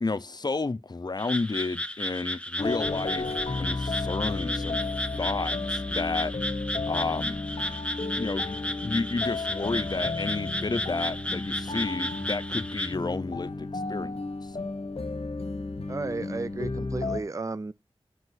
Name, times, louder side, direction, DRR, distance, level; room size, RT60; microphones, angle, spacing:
voice 1, 0.0-4.8 5.2-6.3 6.9-7.4 8.1-14.6, left 3 dB, 45° left, 0.6 m, -31 dB
Frog, 1.2-12.9, left 1 dB, 10° left, 0.9 m, -34 dB
sound 1, 2.6-17.2, left 3 dB, 75° left, 1.1 m, -33 dB
voice 2, 15.9-17.7, right 3 dB, 30° right, 0.4 m, -33 dB
5.5 x 5.4 x 5.7 m
wide cardioid pair, 40°, 10 cm